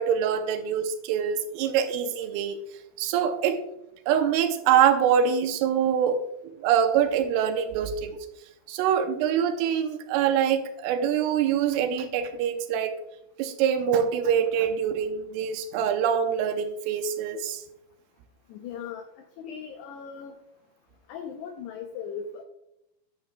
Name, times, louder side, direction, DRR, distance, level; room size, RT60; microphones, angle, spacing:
voice 1, 0.0-2.6 3.0-3.6 4.1-6.2 6.4-8.2 8.7-12.9 13.4-17.6, right 8 dB, 85° right, 7 dB, 3.3 m, -24 dB
voice 2, 18.5-19.0 19.4-20.4 21.1-22.4, left 7 dB, 90° left, 5 dB, 2.3 m, -38 dB
10.0 x 9.8 x 2.3 m, 0.83 s
omnidirectional pair, 5.7 m